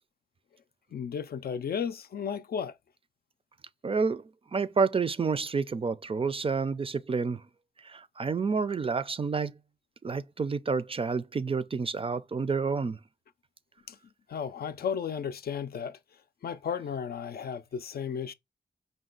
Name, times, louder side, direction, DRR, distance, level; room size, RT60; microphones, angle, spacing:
voice 1, 0.9-2.7 13.9-14.0 14.3-16.0 16.4-18.3, left 7 dB, 70° left, 0.4 m, -34 dB
voice 2, 3.8-4.2 4.5-7.4 7.8-9.5 10.0-13.0, right 5 dB, 35° right, 0.4 m, -29 dB
5.0 x 2.2 x 3.8 m
cardioid pair, 65°, 17 cm